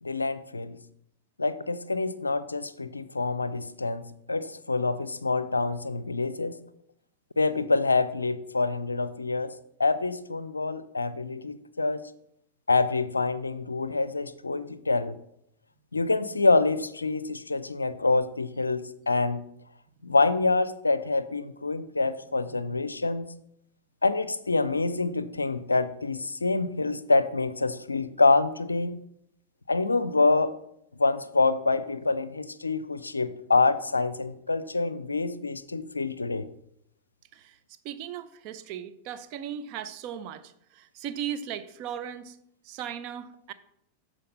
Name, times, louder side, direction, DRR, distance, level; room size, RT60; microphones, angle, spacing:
voice 1, 0.0-0.8 1.4-4.0 4.3-6.6 7.4-9.5 9.8-12.0 12.7-15.2 15.9-19.4 20.0-23.3 24.0-29.0 29.7-30.5 31.0-36.5, left 3 dB, 80° left, 15 dB, 0.5 m, -26 dB
voice 2, 37.8-40.4 40.7-42.3 42.7-43.5, right 9 dB, 45° right, 10 dB, 0.7 m, -37 dB
13.0 x 4.7 x 4.0 m, 0.75 s
figure-of-eight pair, 90°, 0 cm